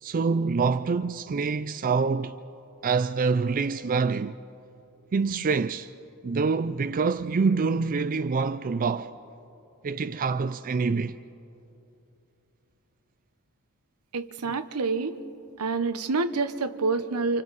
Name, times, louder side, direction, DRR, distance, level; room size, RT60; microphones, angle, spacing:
voice 1, 0.0-2.3 2.8-4.3 5.1-5.9 6.2-9.1 9.8-11.2, right 4 dB, 40° right, 0.4 m, -26 dB
voice 2, 14.1-15.2 15.6-17.4, right 4 dB, 85° right, 1.0 m, -27 dB
29.5 x 27.5 x 4.1 m
head